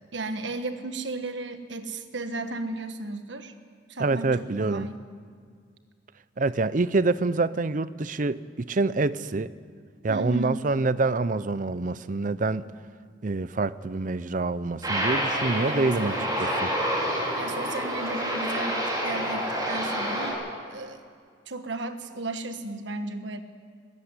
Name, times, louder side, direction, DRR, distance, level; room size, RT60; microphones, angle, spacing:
voice 1, 0.1-3.5 3.9-5.0 10.1-10.6 15.7-16.3 17.3-21.0 21.5-23.4, right 2 dB, 70° right, 1.4 m, -34 dB
voice 2, 4.0-4.9 6.4-9.5 10.0-12.7 13.2-16.7, right 3 dB, 40° right, 0.6 m, -26 dB
Aircraft, 14.8-20.3, equal, 20° right, 5.1 m, -28 dB
20.0 x 15.0 x 9.8 m
head